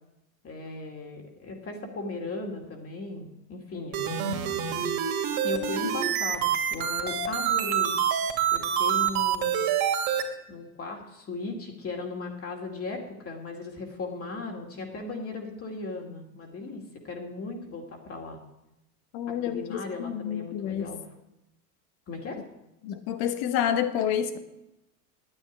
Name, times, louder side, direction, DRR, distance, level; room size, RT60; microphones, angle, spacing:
voice 1, 0.4-4.3 5.4-7.9 8.5-9.6 10.5-18.4 19.3-21.0 22.1-22.4, left 3 dB, 30° left, 1 dB, 2.5 m, -37 dB
sound 1, 3.9-10.2, right 9 dB, 55° right, 2.6 m, -26 dB
voice 2, 19.1-20.9 22.8-24.4, left 9 dB, 55° left, 11 dB, 1.6 m, -29 dB
9.8 x 8.9 x 10.0 m, 0.92 s
supercardioid pair, 120°, 45 cm